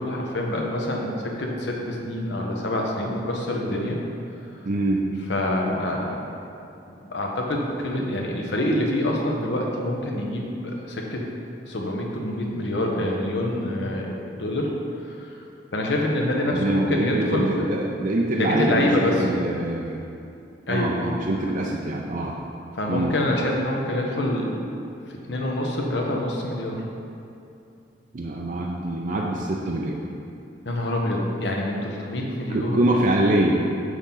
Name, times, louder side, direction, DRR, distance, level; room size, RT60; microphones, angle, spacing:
voice 1, 0.0-4.0 5.3-6.2 7.0-11.3 11.7-14.7 15.1-15.3 15.7-17.5 18.3-19.3 20.7-20.9 22.7-24.6 25.1-26.9 30.6-32.8, left 1 dB, 70° left, -1 dB, 1.1 m, -26 dB
voice 2, 4.6-5.1 16.5-20.0 20.7-22.4 22.9-23.1 28.1-30.0 32.5-33.7, right 1 dB, 45° right, -1 dB, 0.5 m, -24 dB
7.1 x 6.4 x 3.9 m, 2.7 s
head